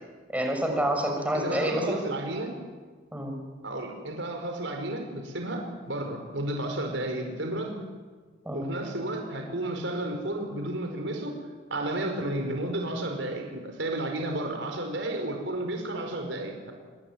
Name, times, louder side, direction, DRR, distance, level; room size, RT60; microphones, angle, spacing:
voice 1, 0.3-2.0 3.1-3.3 8.4-8.7, right 1 dB, 10° right, 2 dB, 6.1 m, -28 dB
voice 2, 1.3-2.6 3.6-7.8 8.5-11.4 11.7-16.7, right 1 dB, 80° right, 3 dB, 5.0 m, -32 dB
26.0 x 22.5 x 9.5 m, 1.4 s
head